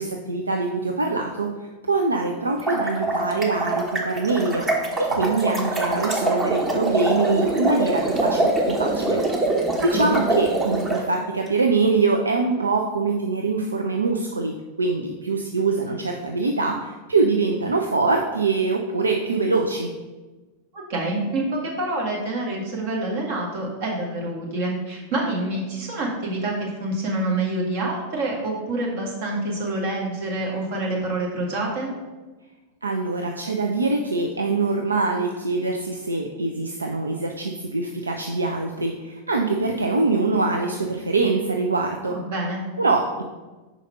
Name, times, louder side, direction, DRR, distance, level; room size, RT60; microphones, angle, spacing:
voice 1, 0.0-1.5 1.9-4.7 5.0-9.2 9.8-19.9 32.8-42.2 42.8-43.2, right 3 dB, 75° right, 2 dB, 0.5 m, -24 dB
sound 1, 2.5-11.0, right 2 dB, 20° right, 1.2 m, -24 dB
voice 2, 20.7-31.9 42.1-42.7, right 2 dB, 50° right, -2 dB, 1.9 m, -27 dB
5.1 x 4.9 x 5.5 m, 1.2 s
figure-of-eight pair, 90°, 0 cm